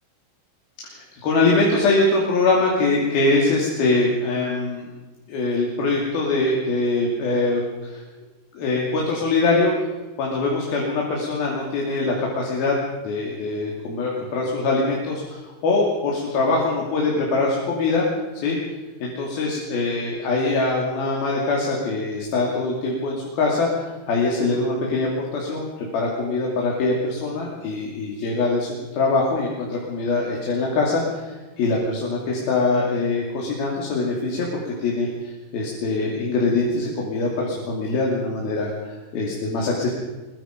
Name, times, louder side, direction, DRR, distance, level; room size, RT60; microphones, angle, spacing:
voice 1, 0.8-4.9 5.3-8.0 8.5-9.7 10.2-12.8 13.0-18.1 18.4-18.6 19.0-39.9, left 3 dB, 75° left, -2 dB, 4.6 m, -23 dB
23.0 x 22.5 x 5.2 m, 1.2 s
omnidirectional pair, 4.4 m